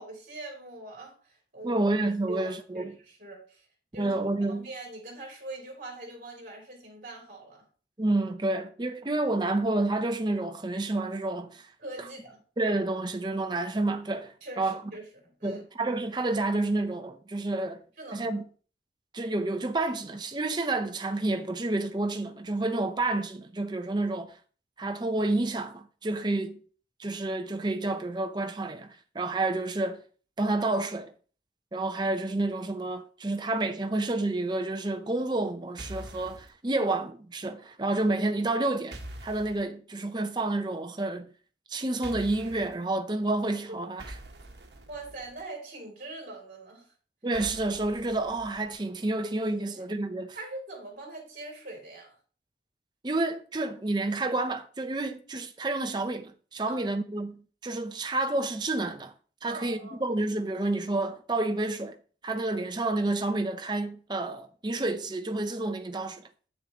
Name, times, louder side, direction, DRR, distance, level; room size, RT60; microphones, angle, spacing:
voice 1, 0.0-1.9 2.3-3.7 3.9-4.1 4.5-7.6 11.8-12.4 14.4-15.6 18.0-18.4 36.8-36.9 43.7-43.8 44.9-46.9 49.6-49.9 50.3-52.2 56.6-57.0 59.5-60.0, right 2 dB, 45° right, 2.8 m, -43 dB
voice 2, 1.6-2.9 4.0-4.7 8.0-11.7 12.6-14.8 15.4-17.8 18.1-18.4 19.1-24.3 24.8-26.6 27.0-30.0 30.4-31.1 31.7-41.3 41.7-44.0 47.2-50.4 53.0-59.1 59.4-62.0 62.2-66.2, right 2 dB, 25° right, 0.6 m, -29 dB
sound 1, 35.8-36.5 38.9-39.6 42.0-42.7 44.0-45.4 47.3-48.8, right 1 dB, 70° right, 1.2 m, -44 dB
8.4 x 6.8 x 3.0 m
head